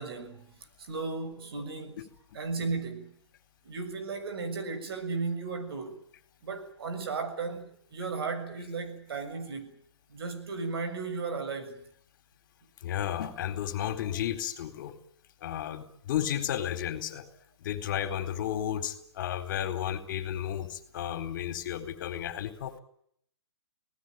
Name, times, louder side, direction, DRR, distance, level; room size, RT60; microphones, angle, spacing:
voice 1, 0.0-3.1 3.6-6.0 6.4-9.8 10.1-11.8, right 4 dB, 60° right, 7.0 m, -35 dB
voice 2, 12.8-14.9 15.4-17.2 17.6-22.8, left 10 dB, 45° left, 3.9 m, -33 dB
26.0 x 19.0 x 9.3 m
hypercardioid pair, 140°, 14 cm